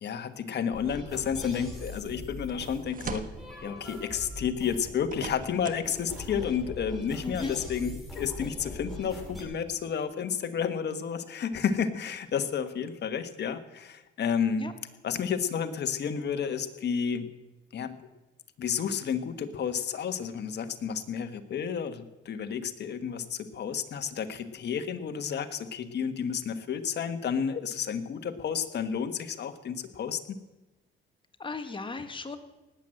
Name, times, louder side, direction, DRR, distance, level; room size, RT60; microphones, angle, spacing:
voice 1, 0.0-3.3 3.6-14.7 15.0-17.3 17.7-18.0 18.6-30.2, left 7 dB, 60° left, 9 dB, 1.4 m, -31 dB
sound 1, 0.7-9.4, left 1 dB, ahead, 5.2 m, -42 dB
school bus truck int roof hatch open close, 1.9-2.0 2.5-3.4 4.7-5.9 6.2-6.3, right 5 dB, 45° right, 1.4 m, -41 dB
voice 2, 7.2-7.5 14.6-14.7 31.4-32.4, left 3 dB, 25° left, 8 dB, 1.6 m, -36 dB
18.5 x 7.9 x 7.7 m, 1.1 s
cardioid pair, 90°, 20 cm